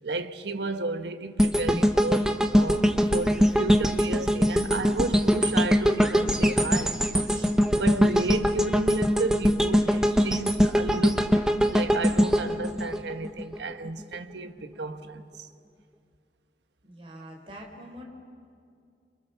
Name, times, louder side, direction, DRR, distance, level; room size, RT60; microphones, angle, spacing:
voice 1, 0.0-7.0 7.3-11.4 11.7-15.5, right 3 dB, 75° right, 1.2 m, -33 dB
sound 1, 1.4-13.6 14.0-14.1, equal, 5° right, 1.0 m, -22 dB
voice 2, 16.8-18.0, equal, 30° right, 4.1 m, -44 dB
28.5 x 26.5 x 7.0 m
head